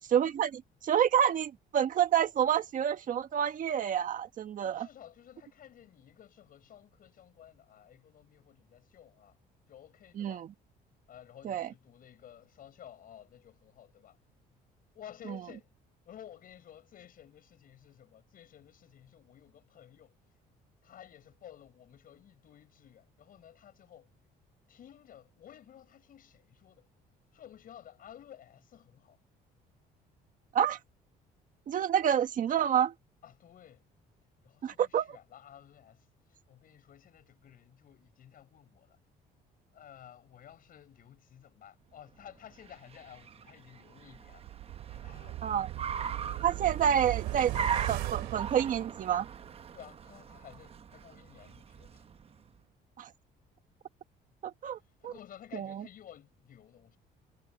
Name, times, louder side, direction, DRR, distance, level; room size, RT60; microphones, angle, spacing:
voice 1, 0.1-4.9 10.2-10.5 11.4-11.7 15.3-15.4 30.5-30.8 31.7-32.9 34.6-35.1 45.4-45.7 46.4-47.5 47.9-49.3 53.0-53.1 54.4-54.8 55.0-55.1 55.5-55.8, right 9 dB, 50° right, 1.5 m, -28 dB
voice 2, 4.6-9.4 9.7-10.4 11.1-14.2 14.9-15.7 16.1-20.2 20.8-24.1 24.7-26.9 27.3-29.2 33.2-33.9 34.4-36.1 36.5-39.0 39.7-44.4 44.9-45.4 49.7-52.0 55.0-57.0, left 10 dB, 55° left, 7.0 m, -54 dB
Car, 42.2-52.5, right 6 dB, 35° right, 0.9 m, -40 dB
sound 1, 44.2-49.5 49.8-49.9, right 17 dB, 90° right, 3.5 m, -38 dB
cardioid pair, 110°, 17 cm